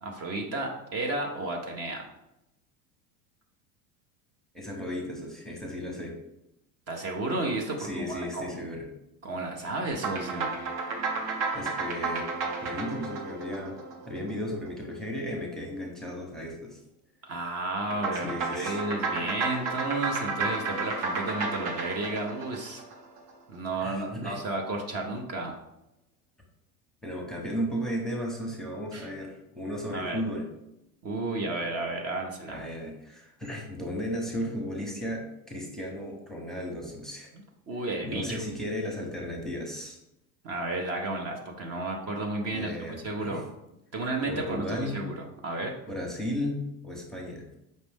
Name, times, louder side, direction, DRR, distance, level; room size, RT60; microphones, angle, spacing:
voice 1, 0.0-2.0 6.9-8.5 9.2-10.5 17.3-22.8 23.5-25.5 28.9-29.1 29.9-30.2 31.0-32.6 37.7-38.4 40.4-42.7 43.0-43.4 43.9-45.2 45.4-45.7, right 2 dB, 35° right, 1 dB, 0.8 m, -32 dB
voice 2, 4.5-6.1 7.8-8.9 11.5-12.2 12.6-13.7 14.1-16.8 18.2-18.8 23.8-24.4 27.0-30.5 32.5-37.3 38.0-40.0 42.5-43.4 44.3-45.0 45.9-47.5, equal, ahead, -1 dB, 0.9 m, -35 dB
sound 1, 9.9-14.6 17.9-23.3, right 4 dB, 65° right, 1.1 m, -32 dB
5.2 x 2.5 x 3.5 m, 0.87 s
hypercardioid pair, 100°, 42 cm